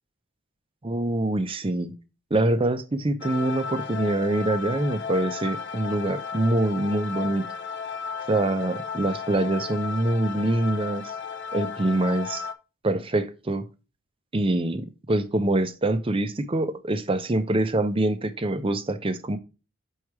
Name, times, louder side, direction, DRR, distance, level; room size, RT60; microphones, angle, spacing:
voice 1, 0.8-1.9 2.3-7.4 8.3-11.1 11.5-12.4 12.8-13.6 14.3-19.4, right 2 dB, 25° right, 0.5 m, -25 dB
sound 1, 3.2-12.5, left 6 dB, 55° left, 0.6 m, -34 dB
5.5 x 4.7 x 4.7 m
head